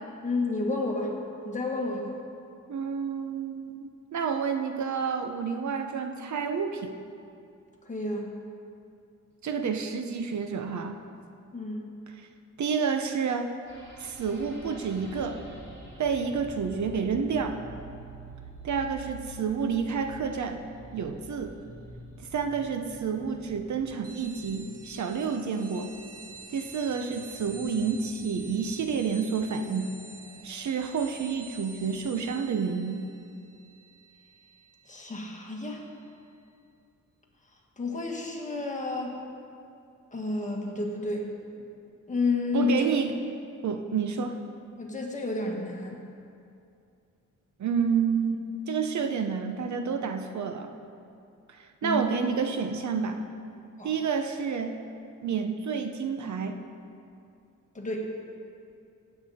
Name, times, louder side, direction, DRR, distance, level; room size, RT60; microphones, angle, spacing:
voice 1, 0.2-1.1 1.4-2.1 7.8-8.3 11.5-11.9 34.9-35.8 37.8-39.1 40.1-41.3 42.1-42.8 44.8-46.0 51.8-52.0 53.8-53.9 57.7-58.1, left 3 dB, 25° left, -1 dB, 1.7 m, -30 dB
voice 2, 2.7-6.9 9.4-11.0 12.6-13.5 14.0-15.4 16.0-17.6 18.6-20.6 20.9-21.6 22.2-25.9 26.5-29.9 30.4-33.0 42.5-43.1 43.6-44.4 47.6-48.4 48.7-50.7 51.5-53.2 53.8-54.7 55.2-56.6, right 6 dB, 65° right, 6 dB, 0.8 m, -29 dB
sound 1, 13.7-32.3, right 1 dB, 40° right, 3.3 m, -48 dB
sound 2, 24.0-36.1, right 4 dB, 80° right, 2.7 m, -49 dB
16.5 x 8.3 x 4.2 m, 2.5 s
wide cardioid pair, 130°, 31 cm